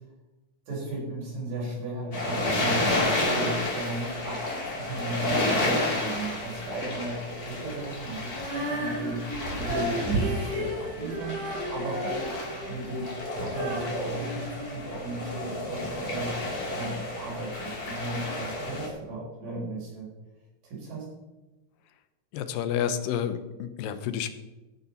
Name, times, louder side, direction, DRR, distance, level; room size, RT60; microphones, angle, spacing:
voice 1, 0.7-9.2 9.6-16.4 16.7-20.1 20.6-21.1, right 2 dB, 80° right, -5 dB, 6.9 m, -35 dB
sound 1, 2.1-18.9, left 1 dB, 30° left, 2.6 m, -31 dB
Female singing, 8.3-15.4, right 1 dB, 65° right, 5.4 m, -33 dB
voice 2, 22.3-24.3, left 9 dB, 85° left, 11 dB, 2.6 m, -30 dB
14.0 x 6.9 x 5.8 m, 1.1 s
omnidirectional pair, 3.9 m